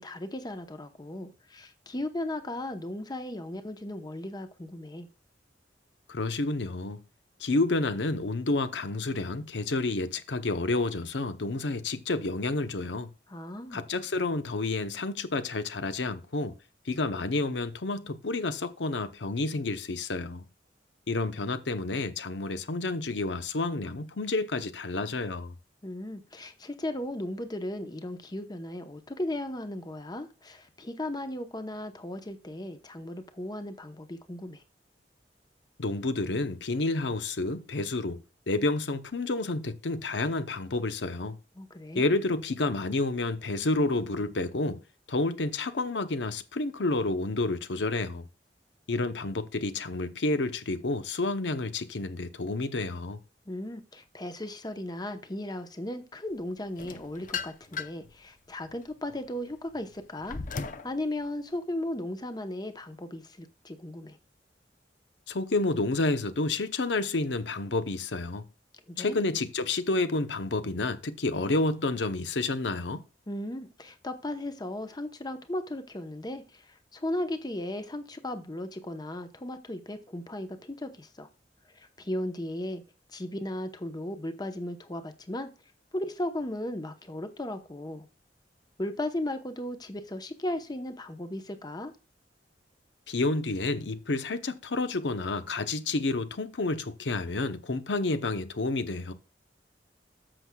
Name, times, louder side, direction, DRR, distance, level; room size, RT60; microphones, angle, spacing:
voice 1, 0.0-5.1 13.3-13.8 25.8-34.6 41.6-42.1 53.5-64.2 68.9-69.3 73.3-81.3 81.7-82.8 83.1-85.5 85.9-88.1 88.8-91.9, left 1 dB, 25° left, 0.9 m, -36 dB
voice 2, 6.1-7.0 7.4-13.1 13.7-16.5 16.9-20.4 21.1-25.5 35.8-41.4 41.9-44.8 45.1-48.2 48.9-53.2 65.3-68.4 69.0-73.0 93.1-99.1, left 2 dB, 80° left, 0.8 m, -30 dB
sound 1, 56.8-58.1 58.7-60.9, left 5 dB, 50° left, 0.6 m, -37 dB
14.0 x 6.3 x 2.3 m
head